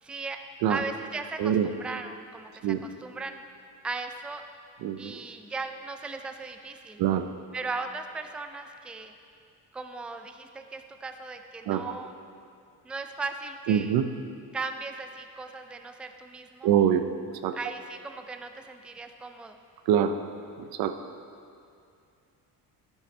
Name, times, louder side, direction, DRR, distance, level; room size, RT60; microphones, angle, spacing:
voice 1, 0.0-0.4 0.7-3.4 3.8-4.4 5.0-7.0 7.5-9.1 9.7-12.2 12.8-14.0 14.5-16.7 17.5-19.6, right 3 dB, 5° right, 7 dB, 0.3 m, -37 dB
voice 2, 4.8-5.2 7.0-7.3 11.7-11.9 13.7-14.1 16.6-17.1 17.4-17.5 19.9-20.1 20.6-20.9, right 9 dB, 85° right, 9 dB, 0.7 m, -24 dB
12.0 x 10.5 x 3.2 m, 2.4 s
cardioid pair, 130°, 35 cm